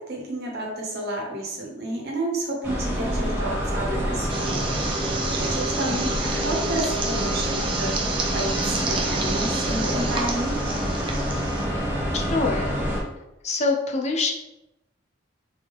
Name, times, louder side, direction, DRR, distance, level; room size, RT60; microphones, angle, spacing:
voice 1, 0.0-4.7 5.3-8.0 8.3-10.8, right 1 dB, 50° right, -2 dB, 1.1 m, -31 dB
sound 1, 2.6-13.0, equal, 10° right, 0.8 m, -27 dB
sound 2, 4.3-11.6, right 4 dB, 25° right, 0.5 m, -31 dB
voice 2, 11.7-12.8 13.4-14.3, left 3 dB, 35° left, 2 dB, 0.4 m, -26 dB
3.8 x 3.3 x 3.5 m, 0.94 s
head